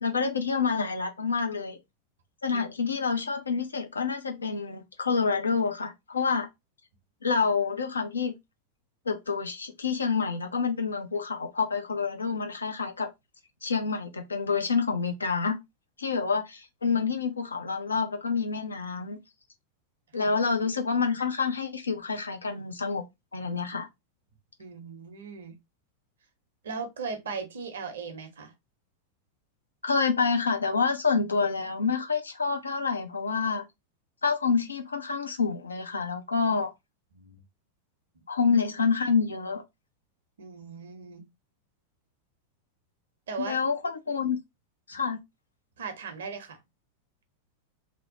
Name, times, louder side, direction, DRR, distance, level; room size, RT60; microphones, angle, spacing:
voice 1, 0.0-1.8 2.4-6.5 7.2-8.3 9.1-13.1 13.6-15.6 16.0-19.2 20.1-23.0 23.3-23.9 29.8-33.6 34.2-36.7 38.3-39.6 43.4-44.4 44.9-45.2, left 5 dB, 75° left, 0.6 m, -28 dB
voice 2, 24.6-25.6 26.6-28.5 37.1-37.4 40.4-41.3 43.3-43.6 45.8-46.6, right 4 dB, 65° right, 0.7 m, -38 dB
2.8 x 2.1 x 2.8 m
figure-of-eight pair, 90°, 0 cm